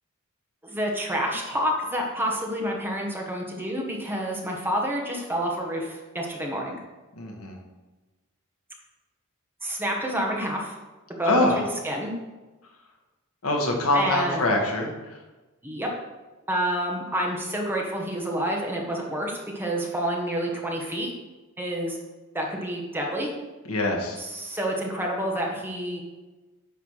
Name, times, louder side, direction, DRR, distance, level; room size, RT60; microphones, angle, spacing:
voice 1, 0.6-6.8 9.6-10.7 11.2-11.5 11.8-12.1 13.9-14.4 15.6-15.9 16.5-21.1 21.6-22.0 22.3-23.3 24.2-26.0, equal, 10° right, -1 dB, 1.3 m, -28 dB
voice 2, 7.2-7.6 11.2-11.6 13.4-14.9 23.7-24.2, left 2 dB, 80° left, 1 dB, 1.5 m, -24 dB
9.3 x 3.5 x 6.2 m, 1.2 s
head